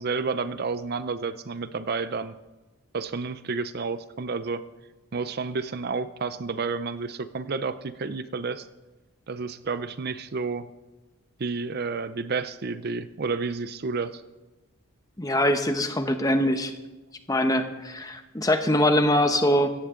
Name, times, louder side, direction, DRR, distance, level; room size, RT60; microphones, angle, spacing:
voice 1, 0.0-2.3 2.9-4.6 5.1-8.7 9.3-10.7 11.4-14.2, right 4 dB, 45° right, 13 dB, 0.5 m, -30 dB
voice 2, 15.2-16.7 17.3-19.7, left 1 dB, 15° left, 7 dB, 0.9 m, -23 dB
17.0 x 14.5 x 3.8 m, 1.1 s
head